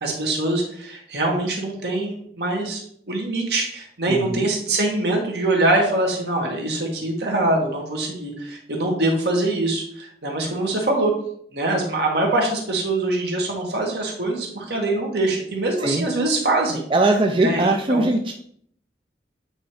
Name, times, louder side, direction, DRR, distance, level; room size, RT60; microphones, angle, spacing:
voice 1, 0.0-2.8 3.1-11.1 11.5-16.8 17.4-18.1, right 2 dB, 70° right, 0 dB, 1.9 m, -23 dB
voice 2, 4.1-4.5 15.8-16.1 16.9-18.3, right 2 dB, 30° right, 3 dB, 0.4 m, -20 dB
8.7 x 3.1 x 4.8 m, 0.64 s
head